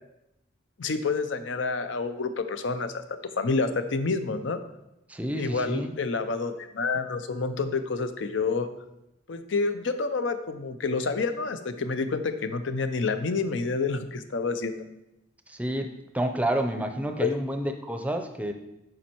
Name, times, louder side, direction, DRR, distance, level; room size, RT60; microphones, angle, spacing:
voice 1, 0.8-2.9 3.4-4.6 5.4-8.7 9.3-14.8 17.2-17.3, left 4 dB, 80° left, 9 dB, 0.6 m, -28 dB
voice 2, 5.1-5.9 15.5-18.5, right 1 dB, 10° right, 6 dB, 0.5 m, -29 dB
7.3 x 5.2 x 4.5 m, 0.90 s
head